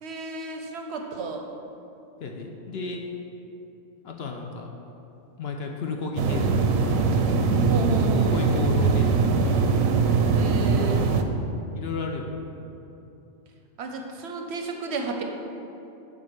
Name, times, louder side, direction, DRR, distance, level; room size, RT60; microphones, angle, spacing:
voice 1, 0.0-1.4 7.7-8.5 10.3-11.1 13.8-15.2, right 3 dB, 65° right, 3 dB, 0.8 m, -32 dB
voice 2, 2.2-3.0 4.0-4.7 5.4-7.1 8.3-9.7 11.7-12.3, left 4 dB, 60° left, 2 dB, 0.7 m, -33 dB
sound 1, 6.2-11.2, right 4 dB, 90° right, 1.0 m, -21 dB
7.6 x 3.6 x 6.6 m, 2.9 s
omnidirectional pair, 1.4 m